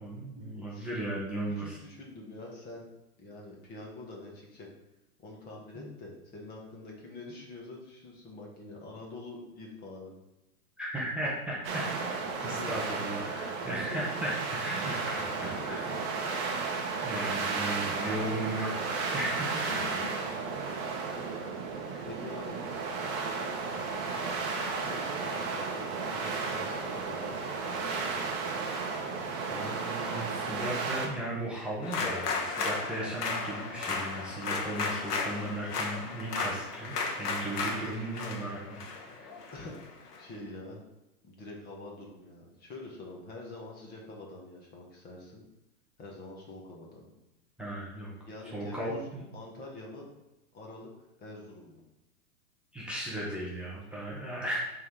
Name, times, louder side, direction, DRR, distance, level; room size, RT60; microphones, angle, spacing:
voice 1, 0.0-1.8 5.7-5.9 10.8-12.1 12.4-15.9 17.0-19.5 29.2-38.8 39.1-39.3 47.6-48.1 48.5-49.2 52.7-54.6, right 1 dB, ahead, -7 dB, 0.7 m, -36 dB
voice 2, 1.5-2.9 3.2-4.7 5.2-10.1 12.3-12.9 13.9-14.1 15.0-16.3 19.5-20.2 22.0-22.6 24.8-28.3 39.5-39.8 40.2-40.8 41.2-45.4 46.0-47.1 48.2-49.1 49.3-50.1 50.5-51.8, left 2 dB, 20° left, -1 dB, 1.4 m, -45 dB
sound 1, 11.6-31.1, right 4 dB, 30° right, 0.9 m, -34 dB
sound 2, 31.8-40.2, left 4 dB, 80° left, 1.4 m, -34 dB
6.1 x 3.7 x 4.6 m, 0.94 s
hypercardioid pair, 145°, 45 cm